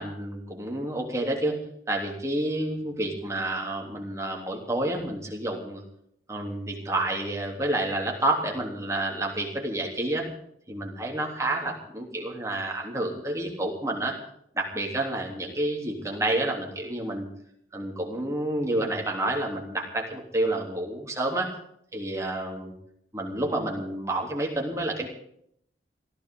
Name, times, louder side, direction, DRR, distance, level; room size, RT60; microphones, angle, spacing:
voice 1, 0.0-1.6 1.9-5.8 6.3-10.3 10.7-14.2 14.5-17.3 17.7-21.5 21.9-22.7 23.1-25.1, right 1 dB, 15° right, 0 dB, 3.4 m, -29 dB
22.0 x 15.0 x 4.0 m, 0.70 s
head